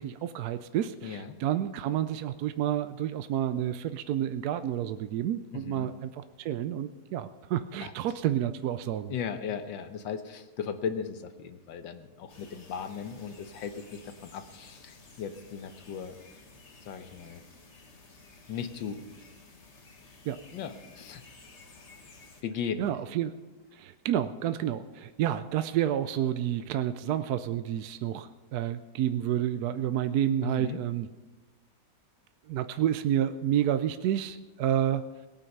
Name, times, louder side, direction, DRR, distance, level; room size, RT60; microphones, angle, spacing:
voice 1, 0.0-9.1 20.3-20.4 22.8-23.3 23.7-31.1 32.5-35.0, right 11 dB, 70° right, 11 dB, 0.9 m, -30 dB
voice 2, 1.0-1.4 5.5-5.9 7.8-7.9 9.1-16.2 16.8-17.4 18.5-19.0 20.5-21.2 22.4-22.9 30.4-30.8, left 7 dB, 85° left, 9 dB, 1.7 m, -37 dB
sound 1, 12.3-22.4, left 3 dB, 40° left, 1.6 m, -54 dB
18.5 x 8.9 x 5.4 m, 1.2 s
omnidirectional pair, 2.0 m